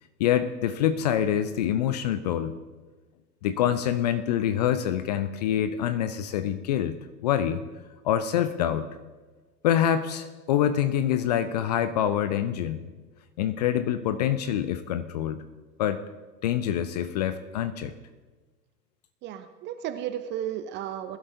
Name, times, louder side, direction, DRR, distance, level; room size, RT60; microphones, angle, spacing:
voice 1, 0.2-2.5 3.4-7.0 7.2-7.6 8.0-8.9 9.6-12.8 13.4-15.5 15.8-16.0 16.4-17.9, left 10 dB, 30° left, 11 dB, 0.4 m, -26 dB
voice 2, 19.2-21.2, right 10 dB, 25° right, 10 dB, 0.6 m, -33 dB
20.0 x 11.5 x 2.7 m, 1.3 s
figure-of-eight pair, 95°, 48 cm